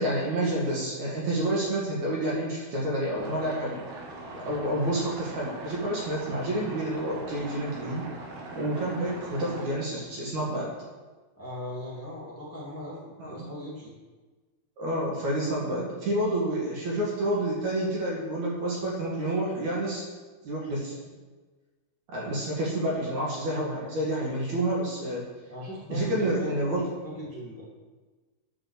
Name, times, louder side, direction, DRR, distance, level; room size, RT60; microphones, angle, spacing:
voice 1, 0.0-3.8 4.3-8.1 8.5-10.7 13.2-13.4 14.8-20.0 20.4-21.0 22.1-25.3 25.9-26.8, right 1 dB, 55° right, -4 dB, 2.8 m, -29 dB
sound 1, 3.1-9.7, right 2 dB, 75° right, 3.5 m, -41 dB
voice 2, 11.3-13.9 25.5-27.8, equal, 5° left, -6 dB, 1.6 m, -39 dB
9.2 x 5.7 x 6.7 m, 1.3 s
omnidirectional pair, 4.6 m